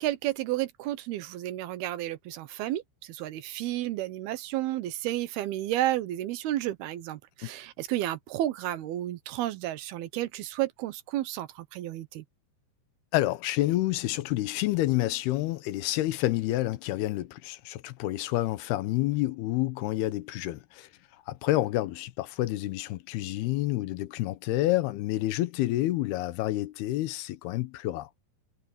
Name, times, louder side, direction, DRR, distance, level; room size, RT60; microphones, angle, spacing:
voice 1, 0.0-12.2, right 14 dB, 80° right, 2.9 m, -32 dB
voice 2, 13.1-20.9 21.3-28.1, left 16 dB, 85° left, 2.9 m, -29 dB
omnidirectional pair, 4.5 m